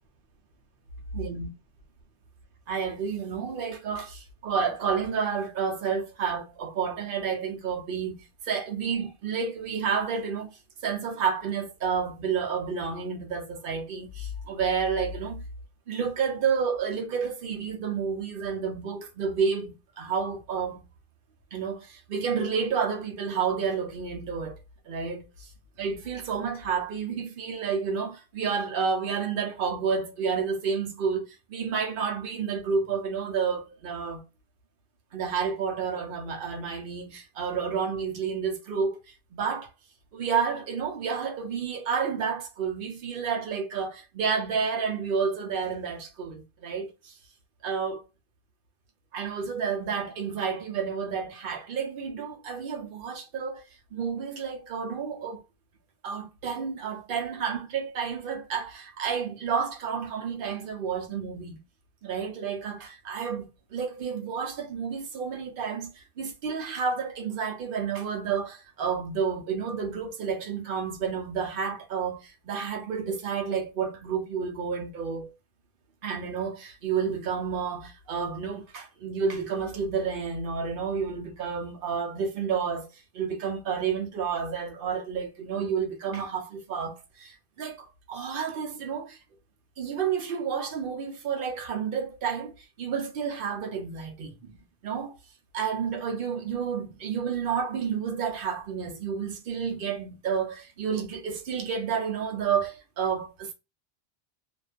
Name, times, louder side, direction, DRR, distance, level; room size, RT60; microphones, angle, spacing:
voice 1, 1.1-1.5 2.7-10.5 10.8-15.4 15.9-20.8 21.5-24.6 24.9-25.5 25.8-34.2 35.1-39.7 40.1-47.1 47.6-48.0 49.1-53.6 53.9-55.4 56.0-61.6 62.0-75.3 76.0-89.2 89.8-94.6 94.8-95.1 95.5-103.5, right 6 dB, 65° right, 0.7 m, -30 dB
2.4 x 2.2 x 2.4 m
omnidirectional pair, 1.0 m